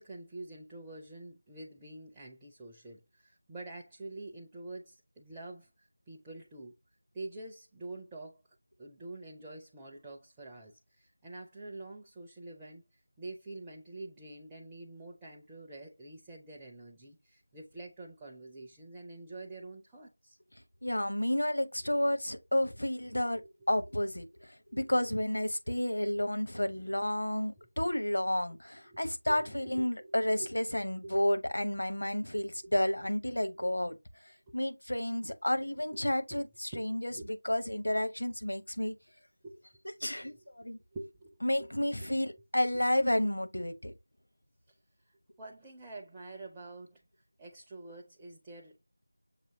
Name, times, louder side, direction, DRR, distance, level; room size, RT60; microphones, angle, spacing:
voice 1, 0.0-6.7 7.1-8.4 8.8-12.8 13.2-20.4 23.2-23.5 24.7-24.9 27.6-27.7 28.9-29.5 29.7-30.5 33.6-33.7 35.9-36.0 36.3-36.4 36.7-37.2 39.4-39.6 40.0-40.5 40.9-41.7 42.0-42.1 45.1-47.0 47.4-48.8, right 2 dB, 5° right, 0.4 m, -47 dB
voice 2, 20.8-23.4 23.7-34.0 34.5-38.9 40.0-40.8 41.4-43.9, left 1 dB, 60° left, 0.9 m, -31 dB
6.6 x 2.7 x 2.7 m
figure-of-eight pair, 170°, 0 cm